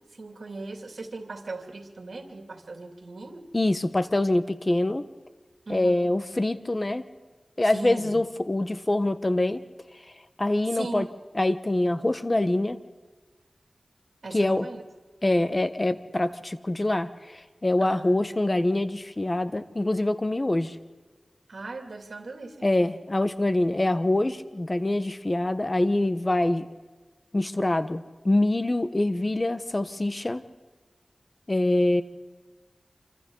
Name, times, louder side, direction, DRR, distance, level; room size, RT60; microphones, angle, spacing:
voice 1, 0.0-3.5 5.7-6.1 7.6-8.1 10.7-11.1 14.2-14.8 17.8-18.6 21.5-22.7, right 3 dB, 80° right, 4 dB, 2.8 m, -38 dB
voice 2, 3.5-5.1 5.7-7.0 7.6-9.6 10.4-11.1 11.3-12.8 14.3-14.7 15.2-20.7 22.6-26.7 27.3-30.4 31.5-32.0, left 1 dB, 35° left, 11 dB, 1.3 m, -25 dB
28.0 x 25.0 x 4.0 m, 1.3 s
wide cardioid pair, 55°, 0 cm